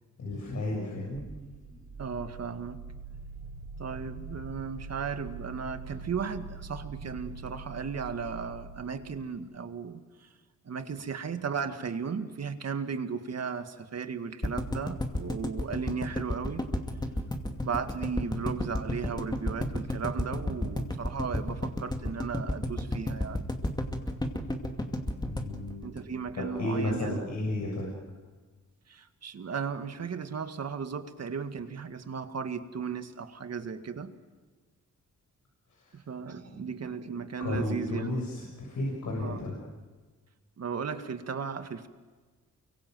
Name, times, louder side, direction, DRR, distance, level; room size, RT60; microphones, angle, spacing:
voice 1, 0.2-1.2 25.3-25.8 26.4-27.9 35.8-36.0 37.4-39.5, left 1 dB, 70° left, -2 dB, 7.2 m, -33 dB
sound 1, 1.1-9.3, right 4 dB, 25° right, 5.3 m, -43 dB
voice 2, 2.0-2.8 3.8-10.3 10.6-16.6 17.6-23.5 25.8-27.2 28.9-34.1 35.9-38.1 39.2-39.4 40.6-41.9, right 6 dB, 55° right, 8 dB, 2.0 m, -36 dB
sound 2, 14.4-26.6 26.9-27.0 27.2-27.3, left 1 dB, 15° left, 2.5 m, -32 dB
29.5 x 24.0 x 7.9 m, 1.4 s
cardioid pair, 105°, 31 cm